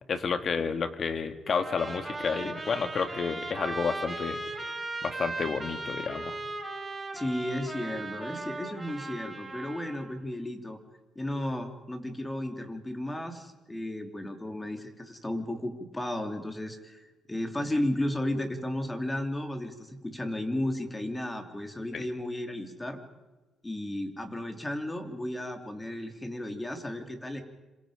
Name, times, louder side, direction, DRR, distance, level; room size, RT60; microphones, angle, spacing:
voice 1, 0.1-4.4 5.0-6.4 21.9-22.0, left 5 dB, 50° left, 9 dB, 2.1 m, -30 dB
Trumpet, 1.5-10.1, right 2 dB, 15° right, 4.4 m, -38 dB
voice 2, 7.1-10.8 11.1-23.0 23.6-27.4, left 1 dB, 15° left, 5 dB, 3.2 m, -34 dB
27.0 x 27.0 x 5.1 m, 1.2 s
cardioid pair, 90°, 0 cm